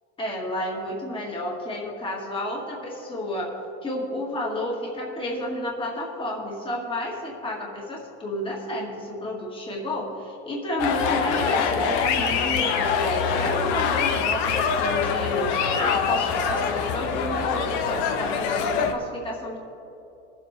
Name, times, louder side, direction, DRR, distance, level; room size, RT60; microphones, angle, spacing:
voice 1, 0.2-3.5 3.8-19.6, left 1 dB, 15° left, -2 dB, 1.9 m, -31 dB
sound 1, 10.8-18.9, left 6 dB, 70° left, 1.1 m, -24 dB
20.0 x 7.9 x 3.3 m, 2.9 s
supercardioid pair, 130°, 35 cm